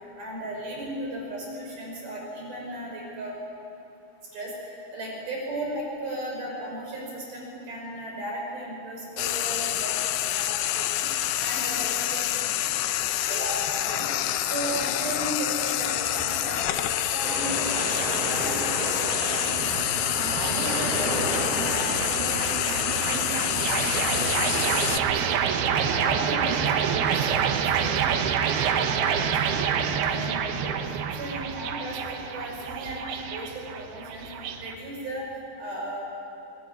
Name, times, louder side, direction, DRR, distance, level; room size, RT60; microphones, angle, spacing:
voice 1, 0.2-3.3 4.3-10.0 10.3-12.3 12.6-14.1 14.5-19.7 20.1-25.2 25.7-28.1 28.6-30.8 31.1-35.3 35.6-36.0, right 1 dB, 50° right, -2 dB, 7.4 m, -36 dB
Frying (food), 9.2-25.0, left 13 dB, 80° left, 2.3 m, -27 dB
sound 1, 15.8-34.7, right 7 dB, 70° right, 2.7 m, -28 dB
sound 2, 17.2-23.1, equal, 10° right, 3.9 m, -33 dB
24.0 x 20.0 x 9.6 m, 2.9 s
omnidirectional pair, 5.5 m